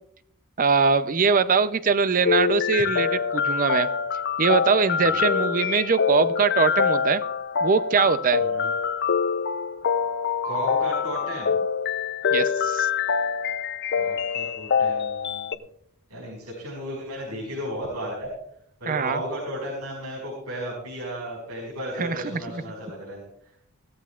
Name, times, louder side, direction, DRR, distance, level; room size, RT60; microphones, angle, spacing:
voice 1, 0.6-3.9 4.4-7.2 7.6-8.4 12.3-12.9 18.9-19.2 22.0-22.6, right 5 dB, 40° right, 13 dB, 0.6 m, -22 dB
sound 1, 2.3-15.6, left 6 dB, 50° left, 0.6 m, -25 dB
voice 2, 10.4-11.6 14.0-15.6 16.1-18.3 18.8-23.2, equal, 80° right, -4 dB, 5.4 m, -34 dB
17.5 x 14.0 x 2.5 m, 0.70 s
head